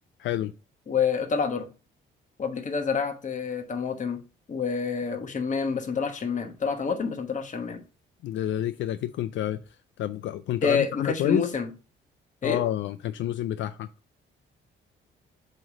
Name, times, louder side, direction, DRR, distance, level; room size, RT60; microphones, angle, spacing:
voice 1, 0.2-0.5 8.2-9.6 10.0-11.5 12.4-13.9, left 12 dB, 75° left, 0.4 m, -28 dB
voice 2, 0.9-1.7 2.4-4.2 4.5-7.8 10.6-11.7 12.4-12.6, left 5 dB, 40° left, 1.2 m, -28 dB
7.6 x 3.2 x 5.1 m
cardioid pair, 90°, 20 cm